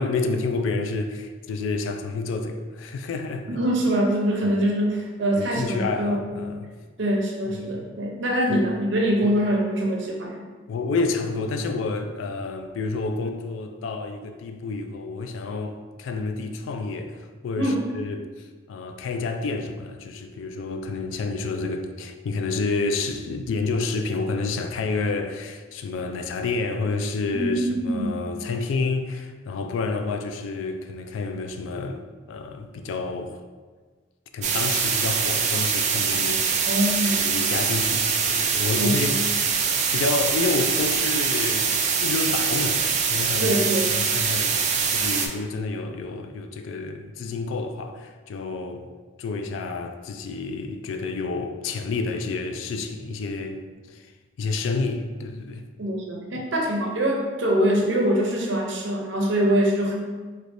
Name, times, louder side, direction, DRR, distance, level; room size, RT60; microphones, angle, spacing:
voice 1, 0.0-3.5 4.4-4.6 5.4-6.7 7.5-7.8 8.5-8.7 9.2-9.4 10.7-32.0 32.3-33.4 34.3-36.7 37.1-39.1 39.9-43.6 43.9-44.6 44.9-48.9 49.2-53.6 53.9-54.1 54.4-55.7, left 3 dB, 85° left, 0.3 m, -29 dB
voice 2, 3.5-6.2 7.0-10.4 17.6-17.8 27.3-28.2 36.7-37.2 38.8-39.1 43.4-43.9 55.8-60.0, right 1 dB, 70° right, 0.6 m, -24 dB
sound 1, 34.4-45.3, right 6 dB, 40° right, 0.3 m, -23 dB
3.3 x 3.1 x 2.6 m
head